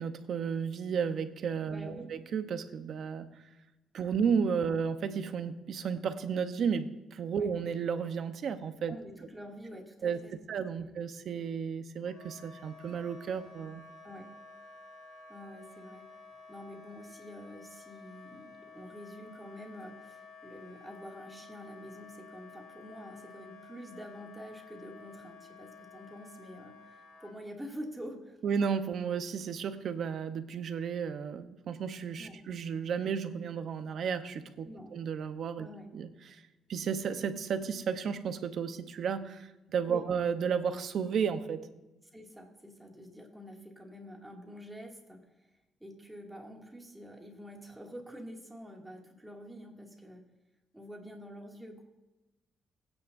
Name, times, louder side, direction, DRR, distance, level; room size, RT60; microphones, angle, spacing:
voice 1, 0.0-3.3 3.9-9.0 10.0-10.2 10.5-13.8 28.4-35.7 35.9-36.4 36.7-41.7, right 6 dB, 65° right, 9 dB, 0.9 m, -33 dB
voice 2, 1.7-2.1 4.6-4.7 7.3-7.5 8.9-10.4 10.7-10.9 14.0-14.3 15.3-16.1 16.5-28.4 32.2-32.4 34.6-35.0 35.6-35.9 39.9-40.1 42.1-45.5 45.8-50.2 50.7-51.8, equal, 10° right, 0 dB, 2.5 m, -47 dB
Wind instrument woodwind instrument, 12.1-27.3, left 4 dB, 75° left, 4.2 m, -52 dB
20.0 x 9.5 x 2.7 m, 1.0 s
cardioid pair, 90°, 0 cm